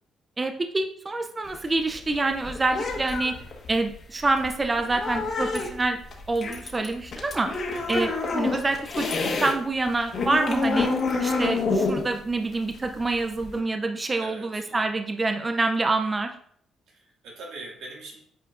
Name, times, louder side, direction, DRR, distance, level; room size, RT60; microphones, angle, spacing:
voice 1, 0.4-3.3 3.7-6.0 6.3-7.5 7.9-9.1 9.4-10.9 11.2-16.3, right 3 dB, 25° right, 6 dB, 0.5 m, -26 dB
sound 1, 1.4-9.5 9.9-13.6, left 3 dB, 55° left, 1.4 m, -28 dB
voice 2, 7.7-8.1 14.2-15.0 16.9-18.2, right 2 dB, 90° right, -3 dB, 2.1 m, -43 dB
8.9 x 4.6 x 2.6 m, 0.64 s
cardioid pair, 90°, 0 cm